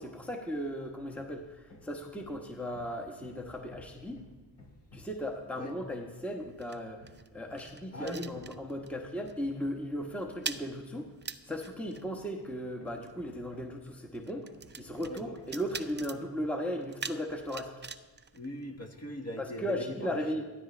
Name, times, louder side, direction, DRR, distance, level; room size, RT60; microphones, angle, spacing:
voice 1, 0.0-4.2 4.9-11.1 11.5-14.5 14.8-17.7 19.4-20.4, equal, 5° left, 2 dB, 1.2 m, -36 dB
Hammer, 1.1-1.4 1.7-5.3 7.0-13.9 14.5-16.4, left 2 dB, 75° left, 3.7 m, -56 dB
sound 1, 5.7-9.0 9.3-9.5 9.8-19.2, right 5 dB, 25° right, 0.6 m, -45 dB
voice 2, 7.9-8.3 15.0-15.2 18.3-20.2, equal, 35° left, 3 dB, 1.7 m, -40 dB
16.0 x 12.5 x 3.3 m, 1.2 s
cardioid pair, 85°, 46 cm